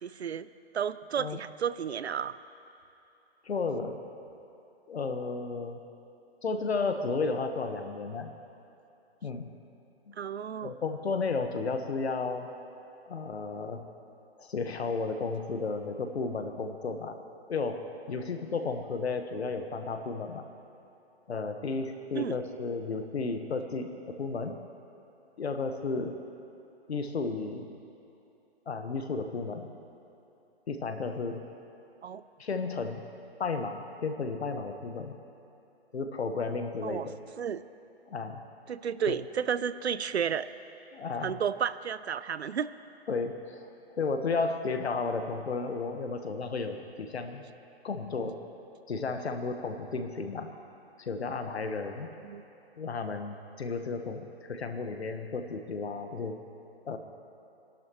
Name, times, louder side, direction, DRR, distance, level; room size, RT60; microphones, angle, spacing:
voice 1, 0.0-2.4 10.1-10.7 22.1-22.4 32.0-32.2 36.8-37.1 37.4-37.6 38.7-40.5 41.2-42.7 52.2-52.4, right 8 dB, 90° right, 15 dB, 0.6 m, -32 dB
voice 2, 3.4-4.0 4.9-5.8 6.4-8.3 9.2-9.5 10.6-12.5 13.1-13.8 14.4-17.2 17.5-17.8 18.1-20.5 21.3-24.6 25.4-26.2 26.9-27.7 28.7-29.7 30.7-31.4 32.4-33.0 33.4-35.2 35.9-37.1 38.1-38.4 39.1-39.2 40.9-41.4 43.1-43.7 44.0-47.4 47.8-48.4 48.9-50.5 51.1-52.1 52.8-56.4 56.9-57.0, left 4 dB, 80° left, 6 dB, 1.4 m, -33 dB
26.0 x 12.0 x 3.1 m, 2.8 s
hypercardioid pair, 135°, 32 cm